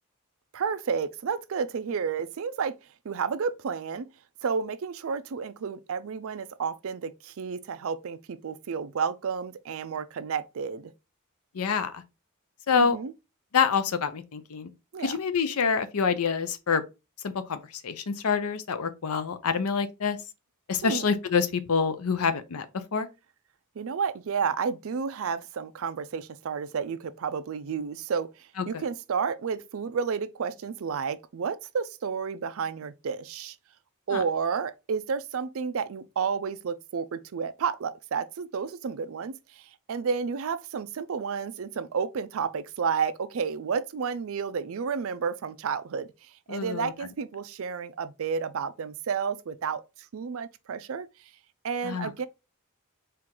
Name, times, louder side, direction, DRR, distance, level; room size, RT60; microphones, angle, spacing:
voice 1, 0.5-2.8 3.0-4.1 4.4-10.9 12.7-13.1 14.9-15.2 20.8-21.1 23.8-33.6 34.1-46.1 46.5-51.1 51.6-52.3, right 6 dB, 65° right, 0.4 m, -31 dB
voice 2, 11.5-12.0 12.7-13.0 13.5-14.7 15.0-16.8 17.2-20.2 20.7-22.7 22.9-23.1 28.7-28.8 34.1-34.2 46.5-46.9 51.8-52.1, left 5 dB, 80° left, 0.6 m, -26 dB
4.5 x 2.5 x 3.7 m
head